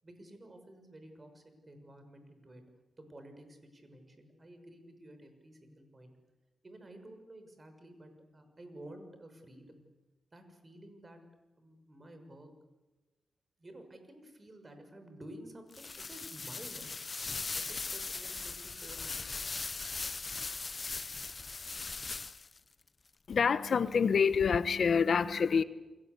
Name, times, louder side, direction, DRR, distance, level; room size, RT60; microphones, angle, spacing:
voice 1, 0.0-2.6 3.0-6.1 6.6-9.8 10.3-11.2 11.6-12.5 13.6-16.9 17.5-19.3, right 1 dB, 30° right, 7 dB, 6.7 m, -52 dB
sound 1, 15.7-22.6, left 4 dB, 40° left, 0.8 m, -39 dB
voice 2, 23.3-25.6, left 6 dB, 65° left, 13 dB, 1.2 m, -27 dB
30.0 x 21.5 x 8.4 m, 1.1 s
cardioid pair, 75°, 0 cm